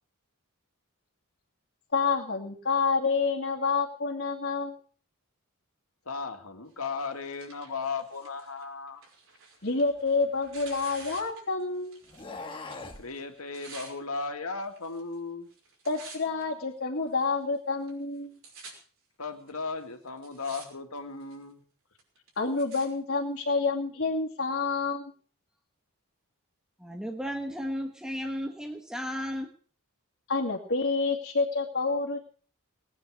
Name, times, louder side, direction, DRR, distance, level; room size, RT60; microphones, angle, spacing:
voice 1, 1.9-4.8 9.6-12.0 15.8-18.4 22.4-25.1 30.3-32.2, left 4 dB, 50° left, -6 dB, 2.6 m, -28 dB
voice 2, 6.1-9.0 12.4-12.7 13.0-15.5 19.2-21.6, left 4 dB, 75° left, 5 dB, 2.3 m, -36 dB
Tearing, 6.8-12.3 12.6-13.9 14.7-15.2 15.5-16.4 17.1-17.2 17.9-18.0 18.1-18.7 19.5-19.6 20.1-20.7 21.0-21.4 22.0-22.9 23.6-23.7, right 4 dB, 65° right, 5.6 m, -49 dB
sound 1, 9.8-11.3 12.0-13.1, left 3 dB, 25° left, 1.7 m, -43 dB
voice 3, 26.8-29.5, equal, 5° right, 3 dB, 1.3 m, -34 dB
19.5 x 9.7 x 6.5 m, 0.43 s
head